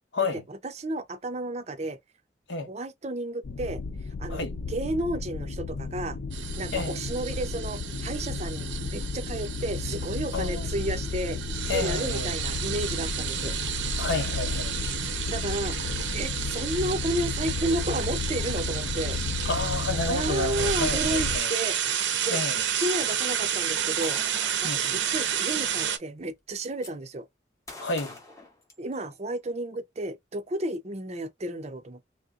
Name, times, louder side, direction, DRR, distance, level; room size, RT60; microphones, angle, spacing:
voice 1, 0.5-2.0 2.7-3.8 4.2-6.2 6.6-11.4 11.7-13.6 15.3-15.8 16.1-19.2 20.1-22.0 22.2-22.4 22.8-24.2 24.6-27.3 28.8-32.0, right 1 dB, 35° right, 0.5 m, -32 dB
sound 1, 3.4-21.4, left 4 dB, 50° left, 0.4 m, -33 dB
sound 2, 6.3-26.0, right 9 dB, 75° right, 0.6 m, -31 dB
voice 2, 10.3-10.7 11.7-12.3 14.0-14.8 19.4-21.5 22.3-22.6 24.6-25.0 27.8-28.2, left 3 dB, 70° left, 0.8 m, -30 dB
Gunshot gunfire, 24.0-24.7 25.8-25.9 26.2-26.9 27.7-29.2, left 2 dB, 15° left, 0.8 m, -45 dB
3.2 x 2.8 x 2.4 m
head